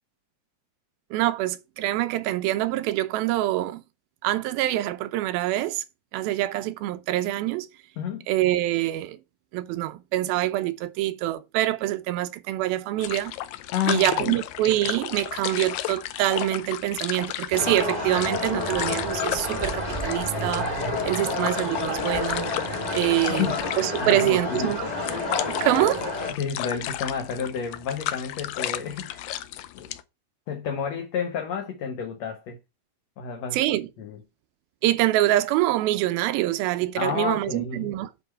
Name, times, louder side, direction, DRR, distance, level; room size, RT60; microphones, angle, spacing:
voice 1, 1.1-3.8 4.2-5.8 6.1-7.7 8.3-9.2 9.5-13.3 13.9-22.5 22.9-24.9 25.5-26.1 33.5-33.9 34.8-38.1, right 15 dB, 90° right, 2.6 m, -25 dB
sound 1, 13.0-30.0, left 13 dB, 85° left, 1.7 m, -34 dB
voice 2, 13.7-14.4 23.4-23.6 24.0-24.7 26.3-29.3 29.8-30.0 30.5-32.6 33.2-33.6 34.0-34.2 37.0-37.9, left 7 dB, 60° left, 2.0 m, -30 dB
sound 2, 17.5-26.3, left 2 dB, 15° left, 1.7 m, -29 dB
9.7 x 4.6 x 4.5 m
omnidirectional pair, 4.1 m